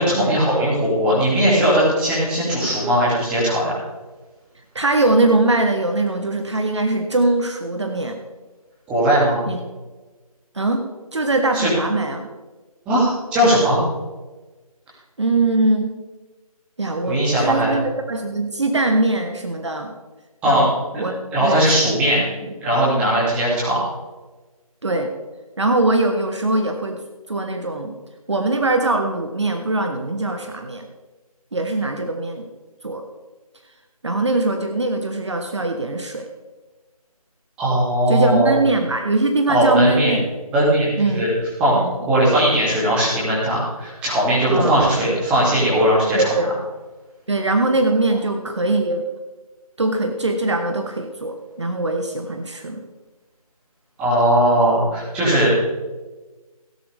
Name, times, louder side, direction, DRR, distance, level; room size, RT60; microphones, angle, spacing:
voice 1, 0.0-3.8 8.9-9.4 11.5-11.7 12.9-13.8 17.1-17.7 20.4-20.7 20.9-21.0 21.3-22.2 22.6-23.8 37.6-38.6 39.5-40.1 40.5-41.3 41.6-41.8 42.0-46.3 54.0-55.6, right 1 dB, 5° right, -7 dB, 2.3 m, -18 dB
voice 2, 4.7-8.2 9.5-9.6 10.5-10.8 11.1-12.3 15.2-15.9 16.8-19.9 20.4-21.8 22.1-22.5 24.8-25.1 25.6-27.0 27.3-27.9 28.3-30.9 31.5-32.5 32.8-33.0 34.0-36.3 38.1-40.2 41.0-41.2 41.7-41.9 44.5-44.8 46.1-46.5 47.3-49.0 49.8-52.8, right 2 dB, 50° right, 5 dB, 1.2 m, -21 dB
17.0 x 10.5 x 3.4 m, 1.2 s
figure-of-eight pair, 160°, 19 cm